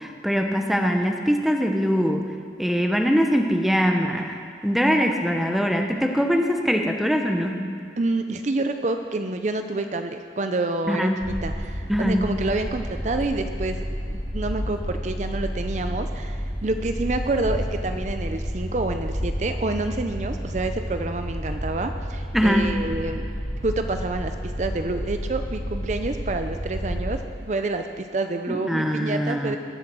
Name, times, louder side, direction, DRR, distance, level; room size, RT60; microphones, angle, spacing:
voice 1, 0.0-2.2 2.6-7.5 10.9-11.1 11.9-12.2 22.3-22.7 28.5-29.6, equal, ahead, 3 dB, 0.9 m, -22 dB
voice 2, 8.0-23.2 23.6-29.6, right 2 dB, 40° right, 7 dB, 0.5 m, -28 dB
sound 1, 11.2-27.2, equal, 25° left, 1.5 m, -31 dB
22.0 x 7.4 x 6.1 m, 2.2 s
head